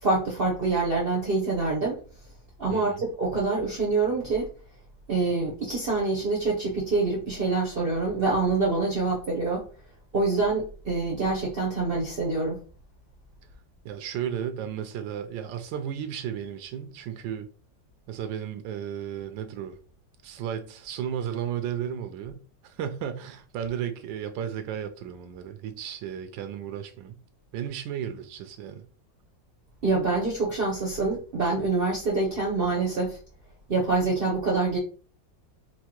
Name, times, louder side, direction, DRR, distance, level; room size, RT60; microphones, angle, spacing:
voice 1, 0.0-2.0 2.6-4.5 5.1-9.7 10.1-12.6 29.8-33.2 33.7-34.8, right 3 dB, 55° right, 0.6 m, -26 dB
voice 2, 2.7-3.0 13.8-17.5 18.1-19.8 20.2-27.2 27.5-28.8, right 9 dB, 90° right, 1.3 m, -34 dB
4.6 x 2.3 x 2.9 m
omnidirectional pair, 2.0 m